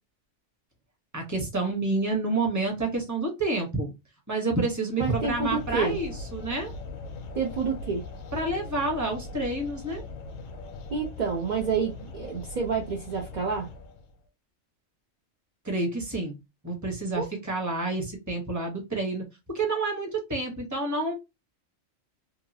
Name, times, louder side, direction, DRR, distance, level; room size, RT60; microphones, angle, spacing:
voice 1, 1.1-3.9 4.3-6.7 8.3-10.0 15.6-16.4 16.6-19.2 19.5-21.1, right 2 dB, 15° right, 0.8 m, -29 dB
sound 1, 5.0-14.2, left 3 dB, 75° left, 0.9 m, -40 dB
voice 2, 5.0-6.0 7.3-8.0 10.9-13.7 17.2-17.3, right 5 dB, 60° right, 0.5 m, -29 dB
2.8 x 2.4 x 2.6 m
omnidirectional pair, 1.4 m